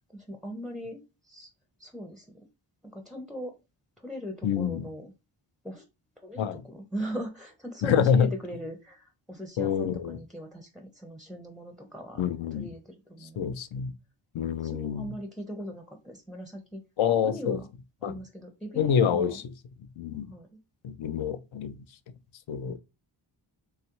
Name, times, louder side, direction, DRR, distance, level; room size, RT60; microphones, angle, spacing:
voice 1, 0.1-1.0 1.3-1.5 1.8-2.3 2.9-3.6 4.0-5.1 5.6-5.8 6.2-12.2 12.6-13.6 14.4-16.8 17.2-17.6 18.0-19.4 20.3-20.5 22.6-22.8, equal, ahead, 0.4 m, -39 dB
voice 2, 4.4-4.9 6.4-6.6 7.8-8.3 9.6-10.2 12.2-12.7 13.2-13.9 14.3-15.1 17.0-17.6 18.0-18.2 18.8-19.5 20.0-20.3 20.8-21.8 22.5-22.8, left 7 dB, 75° left, 0.5 m, -27 dB
3.1 x 2.4 x 2.9 m
cardioid pair, 60°, 48 cm